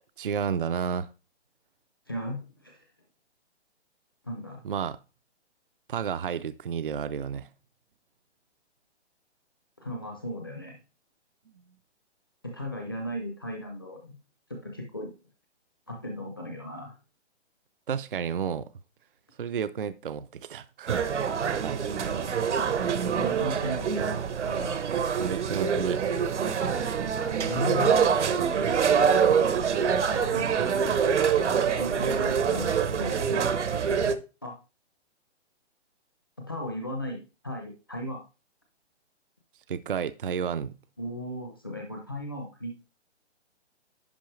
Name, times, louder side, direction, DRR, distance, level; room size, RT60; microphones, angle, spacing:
voice 1, 0.2-1.1 4.6-5.0 5.9-7.5 17.9-18.7 19.4-21.0 21.6-21.9 25.2-26.0 39.7-40.8, right 7 dB, 50° right, 0.4 m, -31 dB
voice 2, 2.1-2.9 4.2-4.6 9.8-10.8 12.4-14.1 14.5-15.1 15.9-16.9 23.2-24.8 27.4-27.9 30.1-30.5 31.8-33.2 34.4-34.6 36.4-38.2 41.0-42.8, left 1 dB, 20° left, 0.6 m, -36 dB
sound 1, 20.9-34.2, right 7 dB, 80° right, 1.0 m, -25 dB
10.5 x 5.2 x 3.1 m
hypercardioid pair, 180°, 35 cm